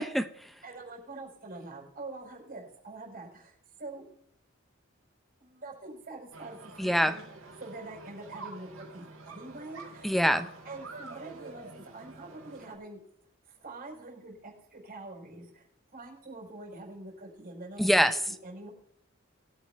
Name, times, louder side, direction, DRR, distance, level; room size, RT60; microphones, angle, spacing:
voice 1, 0.0-0.5 6.8-7.2 10.0-10.5 17.8-18.2, equal, ahead, 12 dB, 0.5 m, -25 dB
voice 2, 0.6-4.0 5.4-7.2 7.6-10.3 10.6-13.0 13.5-15.7 15.9-17.9 18.3-18.7, right 2 dB, 45° right, 0 dB, 4.8 m, -45 dB
sound 1, 6.3-12.7, right 3 dB, 70° right, 3.8 m, -47 dB
21.0 x 8.9 x 3.4 m, 0.70 s
head